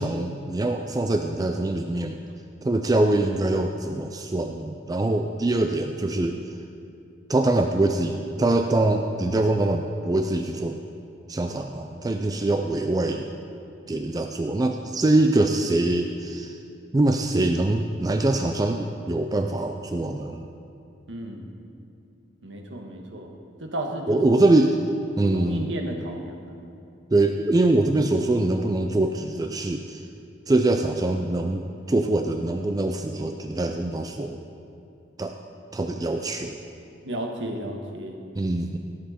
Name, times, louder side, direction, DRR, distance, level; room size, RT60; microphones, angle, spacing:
voice 1, 0.0-2.2 2.6-6.4 7.3-10.8 11.3-13.3 13.9-16.6 16.9-20.5 24.1-24.8 25.2-25.8 27.1-30.0 30.5-34.4 35.2-35.3 35.7-36.6 38.4-38.8, right 2 dB, 20° right, 5 dB, 0.4 m, -23 dB
voice 2, 21.1-21.5 22.4-23.3 23.6-24.2 25.3-26.6 37.0-38.2, right 1 dB, 85° right, 2 dB, 1.4 m, -33 dB
17.0 x 7.7 x 4.2 m, 2.6 s
head